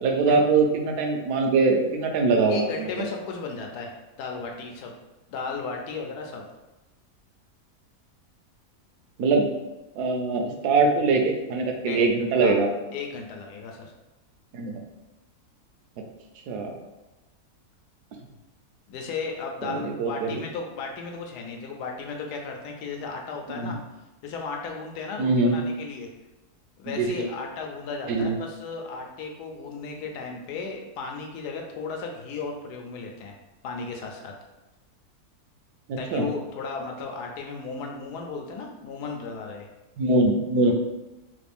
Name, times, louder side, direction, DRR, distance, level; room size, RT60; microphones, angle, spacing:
voice 1, 0.0-3.1 9.2-9.5 9.9-12.7 14.5-14.8 16.0-16.1 16.5-16.8 19.6-20.4 23.5-23.8 25.2-25.6 26.9-27.3 28.1-28.4 35.9-36.2 40.0-40.7, right 3 dB, 80° right, 3 dB, 1.1 m, -23 dB
voice 2, 2.5-4.9 5.3-6.4 11.9-12.1 12.4-12.6 12.9-13.9 18.9-23.8 24.2-26.1 26.8-33.3 33.6-34.3 36.0-39.7, left 4 dB, 90° left, 2 dB, 1.2 m, -35 dB
3.2 x 2.5 x 3.4 m, 1.0 s
omnidirectional pair, 1.7 m